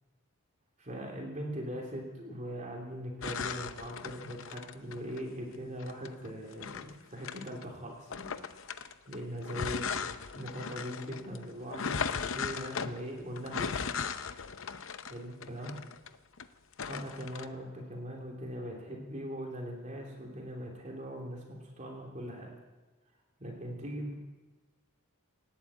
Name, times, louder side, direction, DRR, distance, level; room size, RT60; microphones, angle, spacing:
voice 1, 0.8-8.3 9.1-13.9 15.1-15.7 16.9-22.5 23.4-24.1, equal, 35° right, -1 dB, 3.0 m, -41 dB
sound 1, 3.2-5.2 5.8-7.7 8.1-16.4 16.7-17.5, left 6 dB, 60° left, 0.7 m, -37 dB
19.0 x 8.4 x 8.5 m, 1.2 s
head